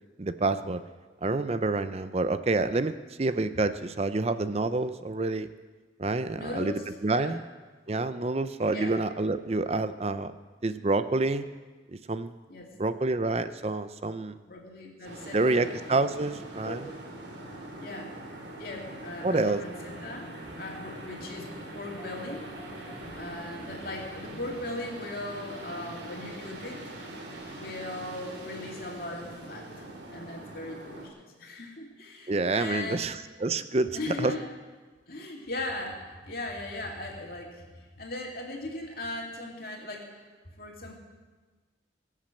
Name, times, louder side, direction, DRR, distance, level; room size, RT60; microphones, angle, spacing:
voice 1, 0.2-0.8 1.2-5.5 6.0-7.4 7.9-10.3 10.6-11.4 11.9-12.3 12.8-14.4 15.3-16.9 19.2-19.6 32.3-34.3, right 2 dB, 35° right, 12 dB, 0.5 m, -28 dB
voice 2, 6.4-6.8 7.1-7.4 8.7-9.0 12.5-12.7 14.5-15.7 16.6-16.9 17.8-18.2 18.6-20.3 20.6-21.5 21.7-22.5 23.2-26.8 27.5-29.7 30.1-33.1 33.9-34.5 35.1-40.3 40.6-41.0, left 2 dB, 50° left, 0 dB, 2.7 m, -38 dB
sound 1, 15.0-31.1, right 1 dB, 70° right, 3.1 m, -43 dB
sound 2, 19.5-24.7, equal, 20° left, 3.5 m, -50 dB
21.5 x 7.4 x 7.7 m, 1.4 s
head